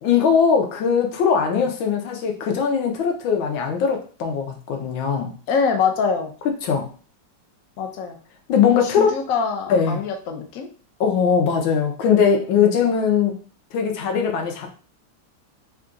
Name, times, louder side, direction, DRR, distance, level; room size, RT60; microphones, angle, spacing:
voice 1, 0.0-5.3 6.6-6.9 8.5-9.2 9.7-10.0 11.0-13.3 13.7-14.7, left 6 dB, 85° left, 2 dB, 1.5 m, -20 dB
voice 2, 5.5-6.3 7.8-8.2 8.8-10.7 12.6-12.7, left 5 dB, 65° left, 3 dB, 0.9 m, -24 dB
3.7 x 2.3 x 3.7 m, 0.40 s
omnidirectional pair, 2.1 m